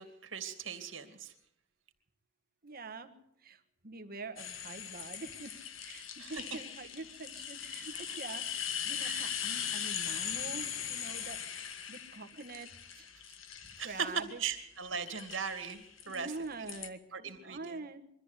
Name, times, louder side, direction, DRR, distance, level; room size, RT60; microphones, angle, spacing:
voice 1, 0.0-1.3 6.2-6.4 7.9-8.2 9.0-9.3 9.5-9.7 13.8-14.1 14.4-16.3 16.6-16.7 17.1-17.8, right 6 dB, 70° right, 7 dB, 2.6 m, -39 dB
voice 2, 2.6-3.1 3.4-5.5 5.8-12.7 12.9-13.1 13.8-14.4 16.0-18.0, right 3 dB, 50° right, 7 dB, 1.6 m, -45 dB
sound 1, 4.4-14.6 15.1-16.9, left 8 dB, 85° left, 1.6 m, -40 dB
23.0 x 14.0 x 8.2 m, 0.78 s
head